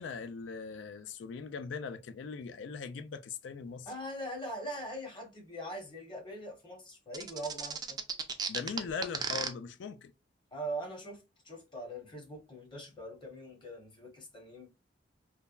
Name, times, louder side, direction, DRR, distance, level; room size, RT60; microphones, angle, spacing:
voice 1, 0.0-3.9 8.5-10.1, left 5 dB, 70° left, 0.3 m, -40 dB
voice 2, 3.9-8.0 10.5-14.7, right 1 dB, 25° left, 0.9 m, -42 dB
sound 1, 7.1-9.5, right 5 dB, 20° right, 0.4 m, -34 dB
3.2 x 2.1 x 2.3 m
head